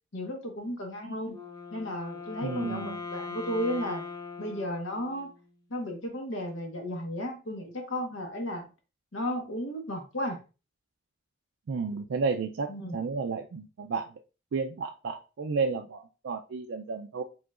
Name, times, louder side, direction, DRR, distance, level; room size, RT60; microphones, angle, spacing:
voice 1, 0.1-1.4 1.7-4.0 4.4-5.3 5.7-8.6 9.1-10.4 12.7-13.0, equal, 90° left, 3 dB, 1.2 m, -34 dB
Wind instrument woodwind instrument, 1.3-5.5, left 4 dB, 20° left, 0.6 m, -40 dB
voice 2, 2.4-3.0 11.7-14.1 14.5-17.2, right 4 dB, 80° right, 2 dB, 0.4 m, -32 dB
4.9 x 3.8 x 2.4 m, 0.32 s
head